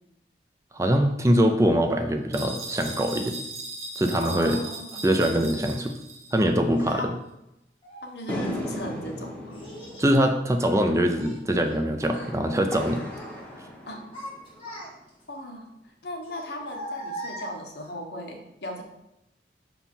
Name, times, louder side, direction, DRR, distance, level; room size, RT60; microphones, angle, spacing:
voice 1, 0.7-3.4 4.0-4.6 5.0-6.0 6.3-7.1 10.0-13.0, equal, 15° right, 5 dB, 0.5 m, -23 dB
sound 1, 2.3-6.5, right 2 dB, 35° right, 1.2 m, -38 dB
voice 2, 4.2-5.3 6.9-7.2 8.0-9.6 12.9-13.0 13.9-14.1 15.3-18.8, left 1 dB, 70° left, 1 dB, 1.2 m, -38 dB
Child speech kid speaking, 6.7-6.9 7.8-8.6 9.5-10.1 10.5-11.8 12.0-12.3 12.8-13.4 13.8-15.2 16.2-17.9, equal, 30° left, 2.2 m, -41 dB
sound 2, 8.3-14.8, equal, 10° left, 0.8 m, -37 dB
5.7 x 4.5 x 5.5 m, 0.87 s
head